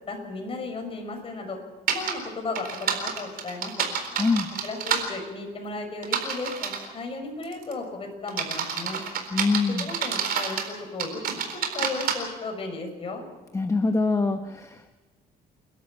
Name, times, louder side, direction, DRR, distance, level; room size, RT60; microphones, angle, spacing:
voice 1, 0.1-1.6 1.9-3.8 4.6-9.0 9.7-11.2 11.7-13.2, left 3 dB, 35° left, 3 dB, 6.2 m, -35 dB
sound 1, 1.9-2.1 2.5-5.0 6.0-6.9 7.4-7.7 8.3-10.7 11.0-12.1, right 7 dB, 60° right, 4.1 m, -28 dB
voice 2, 4.2-4.5 9.3-9.9 13.5-14.9, left 3 dB, 15° left, 7 dB, 1.1 m, -24 dB
29.5 x 12.5 x 7.4 m, 1.2 s
cardioid pair, 110°, 17 cm